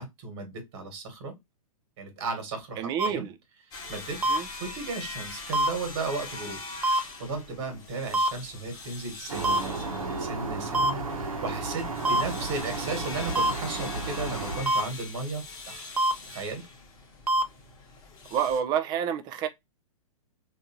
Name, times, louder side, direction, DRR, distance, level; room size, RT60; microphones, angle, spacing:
voice 1, 0.0-1.3 2.0-3.3 3.9-4.2 4.5-6.6 6.9-15.9 16.3-16.7, right 3 dB, 40° right, 1.5 m, -35 dB
voice 2, 2.8-3.4 4.3-4.5 18.3-19.5, right 8 dB, 20° right, 0.5 m, -28 dB
sound 1, 3.0-3.1 4.2-4.4 5.5-5.7 6.8-7.0 8.1-8.3 9.4-9.6 10.7-10.9 12.1-12.2 13.4-13.5 14.7-14.8 16.0-16.1 17.3-17.4, right 1 dB, 90° right, 0.6 m, -23 dB
sound 2, 3.7-18.6, left 3 dB, 20° left, 1.1 m, -43 dB
sound 3, 9.3-14.8, right 3 dB, 65° right, 1.0 m, -34 dB
3.3 x 2.7 x 2.7 m
figure-of-eight pair, 110°, 19 cm